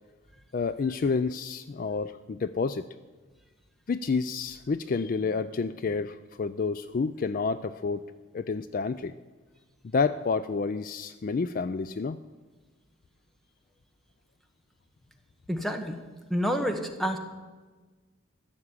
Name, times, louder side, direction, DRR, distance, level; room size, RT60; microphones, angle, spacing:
voice 1, 0.5-2.9 3.9-8.0 8.3-9.1 9.9-12.2, left 4 dB, 40° left, 14 dB, 0.3 m, -29 dB
voice 2, 15.5-16.0 16.3-17.2, equal, ahead, 6 dB, 1.1 m, -28 dB
14.5 x 7.2 x 9.7 m, 1.3 s
head